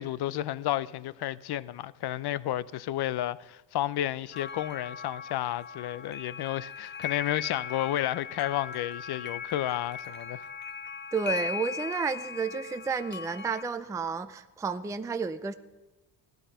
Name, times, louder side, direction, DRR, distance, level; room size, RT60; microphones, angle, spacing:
voice 1, 0.0-10.4, left 13 dB, 55° left, 0.7 m, -31 dB
sound 1, 4.3-13.6, left 7 dB, 25° left, 0.9 m, -39 dB
voice 2, 11.1-15.5, right 5 dB, 5° right, 0.5 m, -31 dB
17.5 x 12.0 x 5.6 m
cardioid pair, 140°, 46 cm